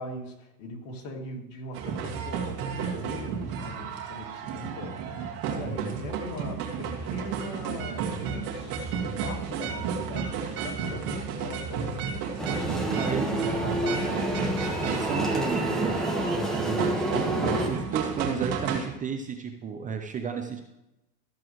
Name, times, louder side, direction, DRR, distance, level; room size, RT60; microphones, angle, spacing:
voice 1, 0.0-14.4, left 1 dB, 60° left, 1 dB, 2.6 m, -41 dB
sound 1, 1.7-18.9, right 6 dB, 45° right, 2.0 m, -32 dB
voice 2, 5.6-6.0 13.0-13.3 14.8-20.6, right 6 dB, 15° right, 5 dB, 0.5 m, -33 dB
sound 2, 12.4-17.7, right 1 dB, ahead, 1.3 m, -28 dB
13.5 x 7.5 x 3.1 m, 0.92 s
supercardioid pair, 125°, 48 cm